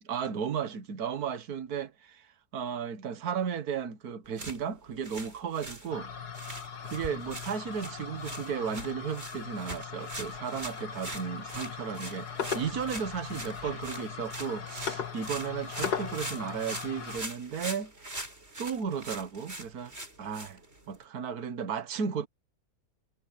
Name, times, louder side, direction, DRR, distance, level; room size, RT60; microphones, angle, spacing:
voice 1, 0.1-2.3 2.5-6.1 6.8-17.9 18.6-19.9 20.2-20.6 20.9-22.3, right 7 dB, 75° right, 1.7 m, -34 dB
sound 1, 4.2-21.0, right 1 dB, 40° right, 5.9 m, -43 dB
sound 2, 5.9-17.2, left 7 dB, 90° left, 2.4 m, -39 dB
omnidirectional pair, 1.6 m